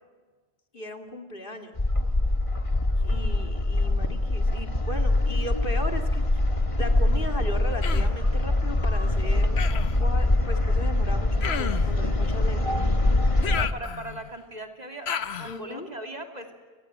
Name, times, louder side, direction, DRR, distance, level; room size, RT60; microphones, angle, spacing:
voice 1, 0.7-1.8 3.0-6.3 6.8-12.9 15.4-15.9, left 1 dB, 55° left, 5 dB, 2.8 m, -37 dB
sound 1, 1.8-13.7, left 2 dB, 30° left, 1.7 m, -24 dB
Human voice, 7.8-8.2 9.6-10.0 11.4-12.0 13.4-14.3 15.1-15.6, left 7 dB, 85° left, 1.2 m, -32 dB
voice 2, 13.3-15.1 15.4-16.6, right 1 dB, 40° right, 4 dB, 2.9 m, -39 dB
29.5 x 19.5 x 8.9 m, 1.5 s
omnidirectional pair, 1.1 m